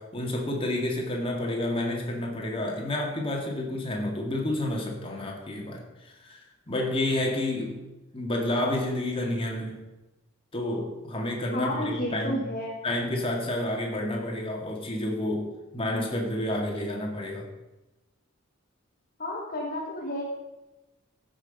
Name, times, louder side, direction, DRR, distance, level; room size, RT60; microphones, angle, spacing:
voice 1, 0.0-6.4 6.7-7.8 8.1-9.8 10.5-12.5 12.8-17.5, left 1 dB, 25° left, 0 dB, 2.2 m, -30 dB
voice 2, 11.5-12.8 19.2-20.2, left 1 dB, 45° left, -2 dB, 1.5 m, -31 dB
15.0 x 6.2 x 5.4 m, 1.0 s
head